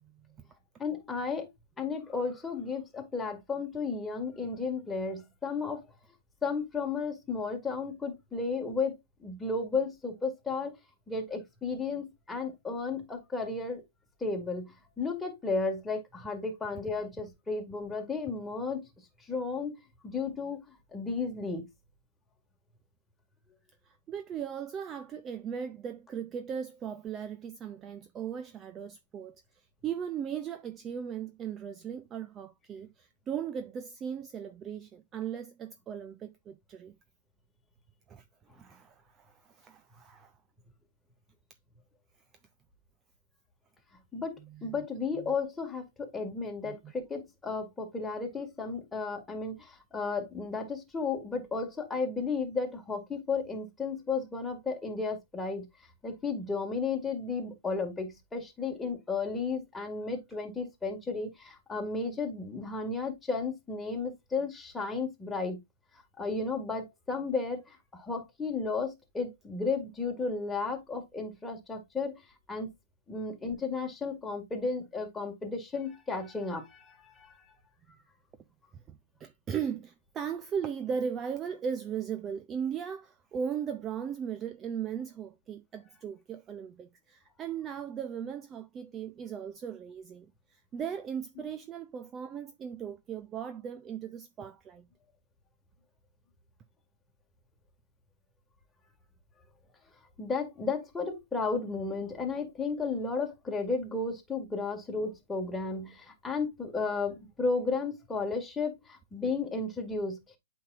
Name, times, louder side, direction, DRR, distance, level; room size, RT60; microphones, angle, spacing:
voice 1, 0.8-1.5 1.8-5.8 6.4-10.8 11.1-13.8 14.2-14.7 15.0-18.9 19.3-19.7 20.0-20.6 20.9-21.7 44.1-55.7 56.0-65.6 66.2-72.2 72.5-72.7 73.1-77.3 100.2-110.4, left 4 dB, 10° left, 1.9 m, -33 dB
voice 2, 23.9-29.4 29.8-36.9 38.1-38.2 38.5-40.3 44.4-44.8 45.2-45.3 46.6-46.8 78.9-94.9, right 7 dB, 20° right, 0.5 m, -38 dB
8.5 x 5.1 x 2.5 m
hypercardioid pair, 125°, 0 cm